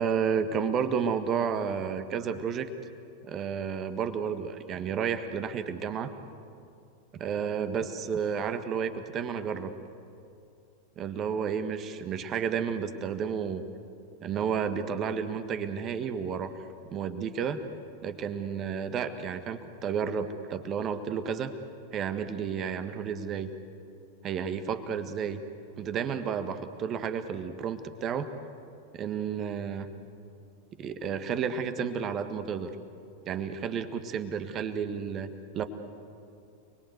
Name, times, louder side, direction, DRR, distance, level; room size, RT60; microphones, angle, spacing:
voice 1, 0.0-2.7 3.2-6.1 7.1-9.7 11.0-13.6 14.2-16.5 16.9-17.6 18.0-21.5 21.9-23.5 24.2-25.4 25.8-28.3 28.9-29.9 30.8-32.7 33.3-35.3 35.5-35.6, right 7 dB, 30° right, 10 dB, 1.6 m, -31 dB
29.5 x 21.0 x 8.1 m, 2.6 s
figure-of-eight pair, 90°, 0 cm